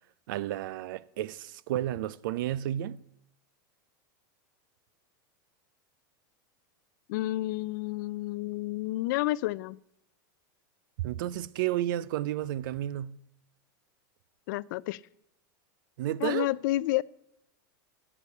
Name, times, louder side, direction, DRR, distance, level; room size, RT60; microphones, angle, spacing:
voice 1, 0.3-3.0 11.0-13.2 16.0-16.5, right 13 dB, 70° right, 0.5 m, -32 dB
voice 2, 7.1-9.8 14.5-15.0 16.2-17.0, left 17 dB, 60° left, 0.4 m, -30 dB
13.0 x 6.8 x 8.3 m
supercardioid pair, 145°, 11 cm